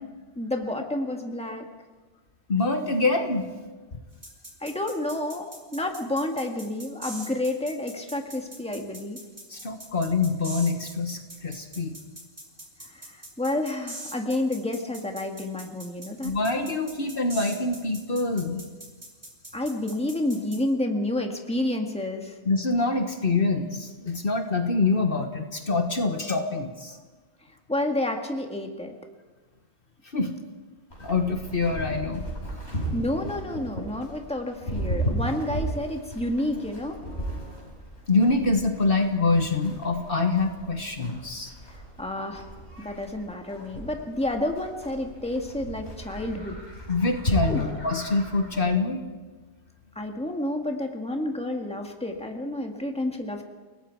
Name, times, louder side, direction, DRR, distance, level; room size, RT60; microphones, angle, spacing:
voice 1, 0.4-1.7 4.6-9.2 12.8-16.4 19.5-22.4 27.7-28.9 32.9-37.0 41.7-42.5 42.8-46.6 47.4-47.7 50.0-53.4, left 1 dB, 5° left, 3 dB, 1.8 m, -30 dB
voice 2, 2.5-3.5 9.5-12.0 16.2-18.6 22.4-27.0 30.1-30.3 31.0-32.2 38.1-41.5 46.9-49.0, left 3 dB, 55° left, 5 dB, 1.6 m, -25 dB
sound 1, 4.2-20.6, right 1 dB, 55° right, 4.4 m, -42 dB
Livestock farm animals working animals, 30.9-48.6, right 1 dB, 85° left, 6.3 m, -35 dB
30.0 x 18.5 x 4.7 m, 1.3 s
omnidirectional pair, 1.1 m